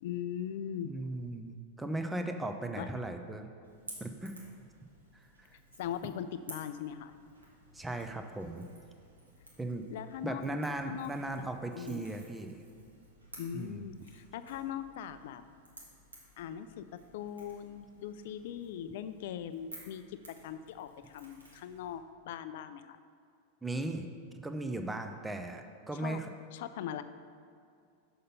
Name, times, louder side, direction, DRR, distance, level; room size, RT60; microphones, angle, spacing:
voice 1, 0.0-0.9 2.8-2.9 5.8-7.1 9.9-10.4 10.8-11.1 11.7-12.0 13.4-15.4 16.4-16.9 17.1-23.0 25.9-26.2 26.5-27.0, left 9 dB, 55° left, 12 dB, 0.4 m, -40 dB
voice 2, 0.8-3.5 4.0-4.4 5.1-5.2 7.7-8.7 9.6-9.9 10.2-12.6 13.5-13.9 23.6-24.1 24.4-26.3, right 2 dB, 10° right, 6 dB, 0.6 m, -37 dB
Crackle / Crack, 3.6-22.0, right 1 dB, 80° right, 1.5 m, -55 dB
6.5 x 5.5 x 5.4 m, 2.3 s
figure-of-eight pair, 90°, 0 cm